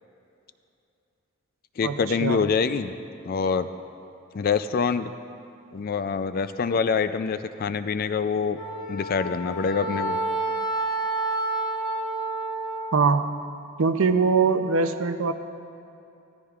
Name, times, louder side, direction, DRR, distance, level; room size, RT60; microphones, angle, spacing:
voice 1, 1.8-2.9 3.2-3.7 4.3-5.1 5.7-8.6 8.9-10.2, left 5 dB, 40° left, 11 dB, 0.3 m, -25 dB
Wind instrument woodwind instrument, 8.5-13.0, right 2 dB, 80° left, 1.9 m, -29 dB
voice 2, 12.9-13.4 13.8-15.3, right 4 dB, 70° right, 8 dB, 0.5 m, -22 dB
15.0 x 13.0 x 2.4 m, 2.7 s
head